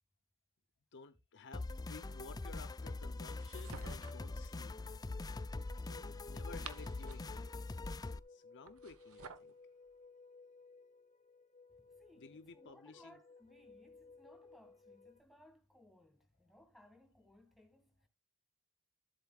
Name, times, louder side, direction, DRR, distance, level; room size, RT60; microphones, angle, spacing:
voice 1, 0.9-5.0 5.8-9.5 12.2-13.2, left 4 dB, 55° left, 0.7 m, -55 dB
sound 1, 1.5-8.2, left 2 dB, 15° left, 0.4 m, -43 dB
sound 2, 3.3-4.3 6.3-7.4 8.6-9.5, right 6 dB, 65° right, 1.1 m, -52 dB
sound 3, 4.9-15.2, left 4 dB, 35° left, 1.0 m, -61 dB
voice 2, 11.8-18.1, left 1 dB, ahead, 2.2 m, -63 dB
12.5 x 8.2 x 2.4 m
head